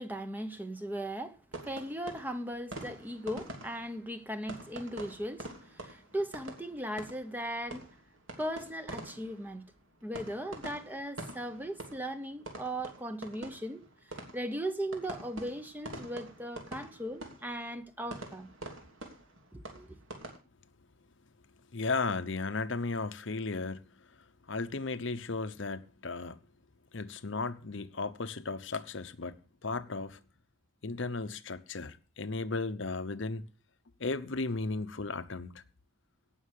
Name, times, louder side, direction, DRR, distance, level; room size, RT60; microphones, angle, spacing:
voice 1, 0.0-1.4 1.6-7.9 8.4-9.6 10.0-13.8 14.3-18.5 19.5-20.0, right 1 dB, 10° right, 0.9 m, -38 dB
sound 1, 1.5-20.4, right 2 dB, 70° right, 3.0 m, -46 dB
voice 2, 21.7-23.8 24.1-26.4 26.9-30.2 30.8-33.5 34.0-35.6, left 3 dB, 60° left, 0.9 m, -35 dB
17.5 x 6.4 x 6.5 m
head